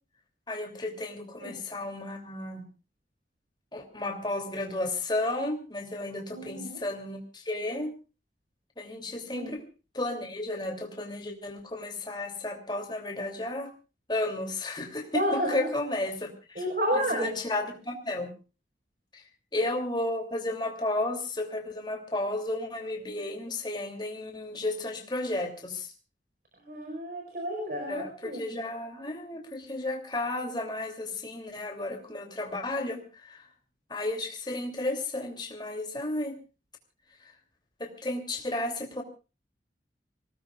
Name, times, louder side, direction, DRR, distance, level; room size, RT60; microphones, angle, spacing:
voice 1, 0.5-2.7 3.7-7.9 8.8-9.6 9.9-13.7 14.1-16.6 16.9-18.3 19.1-19.2 19.5-25.9 27.9-33.4 33.9-36.4 37.8-39.0, left 2 dB, 25° left, 3 dB, 2.8 m, -33 dB
voice 2, 6.3-6.8 9.3-9.5 15.1-15.7 16.6-17.4 26.7-28.4, equal, 50° right, 3 dB, 4.7 m, -30 dB
26.0 x 18.0 x 2.4 m, 0.32 s
head